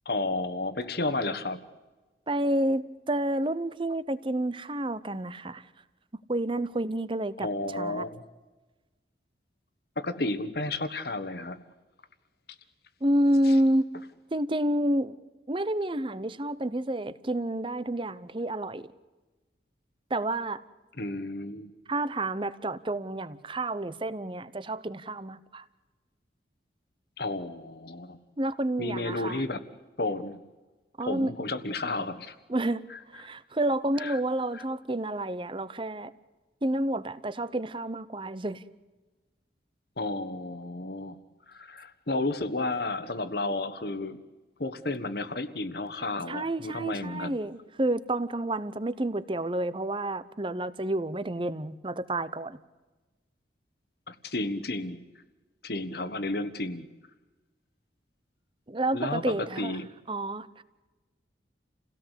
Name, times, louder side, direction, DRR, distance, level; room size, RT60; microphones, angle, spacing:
voice 1, 0.0-1.6 7.4-8.2 10.0-11.6 13.4-13.6 21.0-21.7 27.2-28.2 28.8-29.6 30.0-30.4 31.0-32.3 32.9-33.0 34.0-34.2 34.5-34.6 40.0-41.2 41.5-44.2 44.6-47.4 54.1-55.0 55.6-56.9 58.9-59.9, left 2 dB, 55° left, 11 dB, 1.5 m, -32 dB
voice 2, 2.3-5.6 6.3-7.5 7.8-8.0 13.0-13.9 14.3-15.2 15.5-18.9 20.1-20.6 21.9-25.6 28.4-29.4 31.0-31.3 32.5-32.9 33.1-36.1 36.6-38.6 46.3-52.6 58.7-59.8 60.1-60.5, right 1 dB, 25° right, 16 dB, 0.8 m, -29 dB
29.0 x 17.0 x 8.2 m, 1.2 s
head